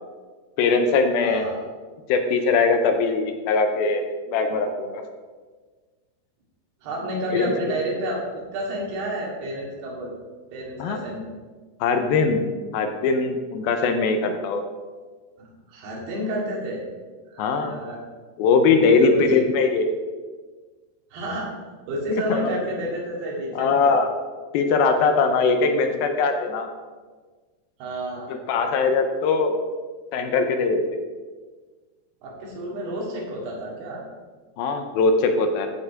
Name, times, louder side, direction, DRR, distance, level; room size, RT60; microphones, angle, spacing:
voice 1, 0.6-1.4 2.1-5.0 7.3-7.5 10.8-11.0 11.8-14.6 17.4-17.8 18.4-19.9 22.3-22.5 23.6-24.1 24.5-26.7 28.3-29.5 30.1-30.8 34.6-35.7, left 4 dB, 80° left, 6 dB, 2.5 m, -21 dB
voice 2, 1.2-1.6 6.8-10.1 10.5-11.3 15.4-16.8 17.3-18.0 18.8-19.5 21.1-21.5 21.9-24.0 27.8-28.3 32.2-34.0, right 1 dB, 80° right, -3 dB, 4.3 m, -30 dB
14.5 x 5.3 x 4.8 m, 1.4 s
omnidirectional pair, 4.6 m